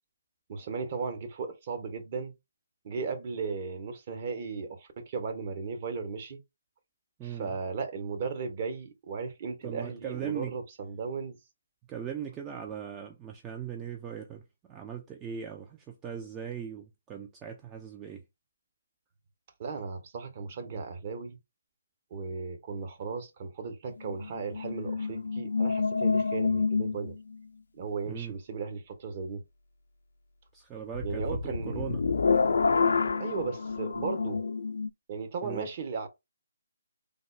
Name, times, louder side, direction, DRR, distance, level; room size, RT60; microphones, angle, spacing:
voice 1, 0.5-2.3 2.8-6.4 7.2-11.4 19.6-21.4 22.1-27.1 27.7-29.4 31.0-31.9 33.2-34.4 35.1-36.1, right 5 dB, 40° right, 0.9 m, -36 dB
voice 2, 7.2-7.6 9.6-10.6 11.9-14.4 14.7-18.2 28.1-28.3 30.5-32.0 35.4-35.7, right 8 dB, 15° right, 0.4 m, -39 dB
sound 1, 23.9-27.4 30.9-34.9, left 4 dB, 65° left, 0.5 m, -28 dB
3.4 x 2.0 x 3.8 m
figure-of-eight pair, 145°, 0 cm